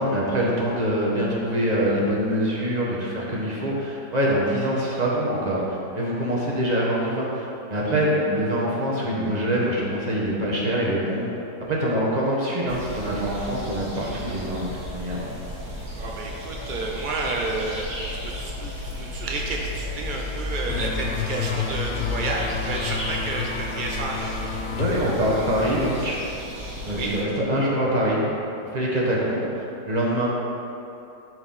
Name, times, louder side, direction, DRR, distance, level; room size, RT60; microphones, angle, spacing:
voice 1, 0.0-11.3 11.7-14.7 14.9-15.3 24.7-26.2 26.8-28.2 28.7-30.3, equal, 25° right, -4 dB, 1.3 m, -24 dB
sound 1, 12.7-27.2, left 1 dB, 55° right, 1.9 m, -34 dB
voice 2, 16.0-17.8 18.2-24.5 26.9-27.1, right 2 dB, 70° right, -1 dB, 0.4 m, -30 dB
sound 2, 20.7-26.0, left 7 dB, 90° left, 0.6 m, -31 dB
11.0 x 4.7 x 4.2 m, 2.8 s
omnidirectional pair, 1.9 m